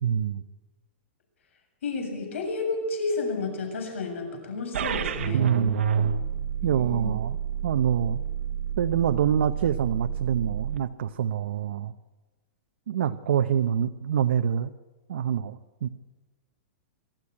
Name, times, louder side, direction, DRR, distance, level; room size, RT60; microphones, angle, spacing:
voice 1, 0.0-0.4 5.3-5.8 6.6-7.4 7.6-8.2 8.8-11.9 12.9-14.7 15.1-15.9, right 9 dB, 65° right, 8 dB, 0.8 m, -26 dB
voice 2, 1.8-5.5 6.6-7.1, left 3 dB, 80° left, 3 dB, 7.6 m, -31 dB
sound 1, 4.7-10.8, right 8 dB, 80° right, 1.5 m, -29 dB
24.0 x 13.5 x 9.9 m, 1.2 s
supercardioid pair, 180°, 7 cm